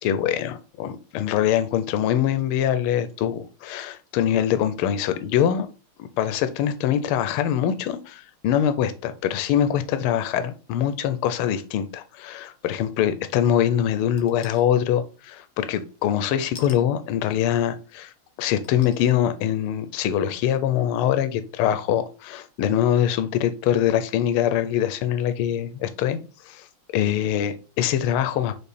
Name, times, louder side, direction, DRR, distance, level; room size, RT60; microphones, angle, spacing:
voice 1, 0.0-5.7 6.0-18.1 18.4-26.2 26.4-26.7 26.9-28.5, left 10 dB, 85° left, 1.5 m, -23 dB
sound 1, 14.2-14.6 16.5-16.8 17.7-17.8 18.6-19.1 19.7-19.8, left 4 dB, 55° left, 1.3 m, -44 dB
5.4 x 4.2 x 4.1 m
omnidirectional pair, 2.4 m